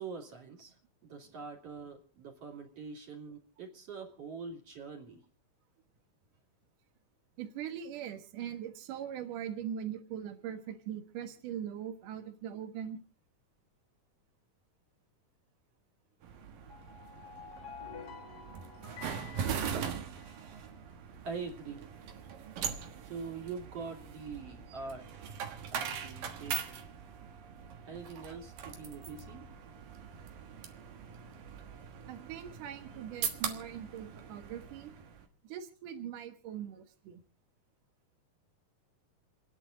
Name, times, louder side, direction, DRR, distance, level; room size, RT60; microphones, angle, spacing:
voice 1, 0.0-5.2 21.2-21.9 23.0-25.3 25.7-26.9 27.8-29.5, right 5 dB, 45° right, 1 dB, 3.7 m, -44 dB
voice 2, 7.4-13.0 32.1-34.9 35.4-37.2, right 9 dB, 70° right, 5 dB, 2.9 m, -41 dB
sound 1, 16.2-35.3, right 7 dB, 90° right, 3.2 m, -41 dB
sound 2, 16.6-20.6, left 6 dB, 50° left, 1.2 m, -50 dB
30.0 x 10.0 x 3.8 m, 0.37 s
omnidirectional pair, 3.9 m